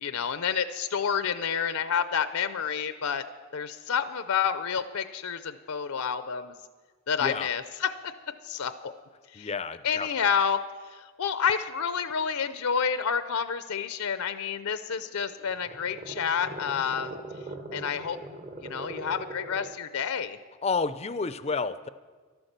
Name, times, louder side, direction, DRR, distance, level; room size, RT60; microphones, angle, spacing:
voice 1, 0.0-3.2 3.5-6.5 7.1-8.1 8.4-8.7 9.3-9.5 9.8-10.6 10.9-17.2 17.7-18.2 18.6-20.4, left 7 dB, 75° left, 12 dB, 0.6 m, -29 dB
voice 2, 7.2-7.5 9.3-10.1 20.6-21.9, left 4 dB, 30° left, 14 dB, 0.4 m, -30 dB
sound 1, 14.9-19.9, right 2 dB, 30° right, 0.8 m, -41 dB
12.0 x 11.5 x 6.7 m, 1.5 s
head